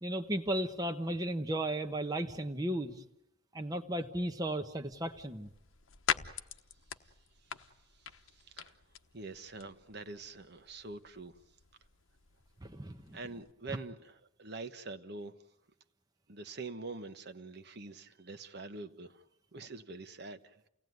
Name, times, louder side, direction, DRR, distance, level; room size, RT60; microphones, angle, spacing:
voice 1, 0.0-3.0 3.5-5.5 12.6-13.2, right 1 dB, 15° right, 6 dB, 1.0 m, -35 dB
sound 1, 4.8-13.5, left 7 dB, 70° left, 1.1 m, -43 dB
voice 2, 8.0-8.7 9.1-11.4 13.1-15.3 16.3-19.2 19.5-20.6, right 3 dB, 50° right, 9 dB, 1.2 m, -45 dB
30.0 x 18.0 x 9.5 m, 0.84 s
head